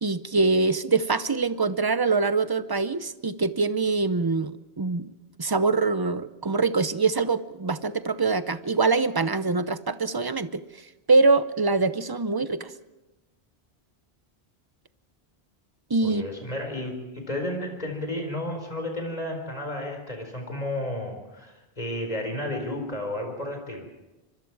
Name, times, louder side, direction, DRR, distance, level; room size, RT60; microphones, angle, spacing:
voice 1, 0.0-5.1 5.4-10.6 11.1-12.7 15.9-16.2, right 3 dB, 25° right, 13 dB, 0.7 m, -24 dB
voice 2, 16.0-23.9, left 1 dB, 40° left, 4 dB, 4.5 m, -32 dB
25.0 x 24.0 x 4.8 m, 1.0 s
omnidirectional pair, 1.1 m